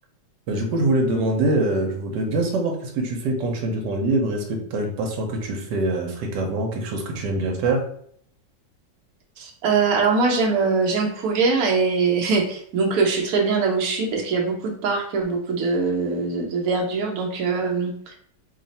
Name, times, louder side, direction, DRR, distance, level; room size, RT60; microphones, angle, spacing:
voice 1, 0.5-7.8, right 2 dB, 85° right, 2 dB, 1.3 m, -24 dB
voice 2, 9.4-18.2, right 4 dB, 65° right, 1 dB, 1.1 m, -22 dB
3.2 x 2.4 x 4.0 m, 0.63 s
omnidirectional pair, 1.8 m